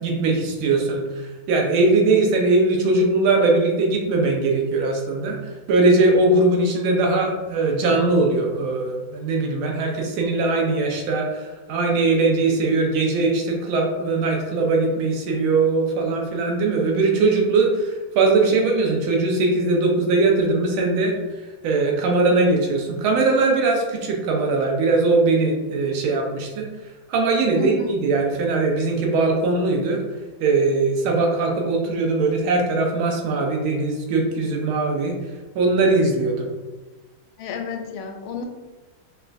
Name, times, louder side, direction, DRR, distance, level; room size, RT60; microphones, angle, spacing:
voice 1, 0.0-5.4 5.7-21.1 21.6-26.7 27.1-30.0 30.4-35.1 35.5-36.5, right 3 dB, 85° right, 0 dB, 1.6 m, -20 dB
voice 2, 27.5-27.9 37.4-38.4, left 5 dB, 85° left, 4 dB, 1.4 m, -31 dB
5.3 x 2.3 x 2.5 m, 1.2 s
omnidirectional pair, 2.2 m